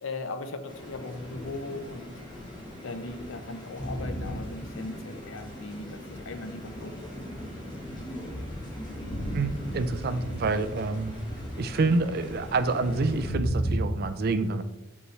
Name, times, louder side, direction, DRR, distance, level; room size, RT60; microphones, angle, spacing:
voice 1, 0.0-2.2 2.8-7.0, left 2 dB, 70° left, 7 dB, 0.6 m, -38 dB
sound 1, 0.7-13.3, equal, 20° left, 1.4 m, -40 dB
sound 2, 6.1-6.5 7.4-13.9, right 1 dB, 55° left, 1.5 m, -35 dB
voice 2, 9.3-11.1 11.6-14.6, right 3 dB, 50° right, 11 dB, 0.4 m, -27 dB
6.1 x 5.4 x 3.2 m, 1.0 s
head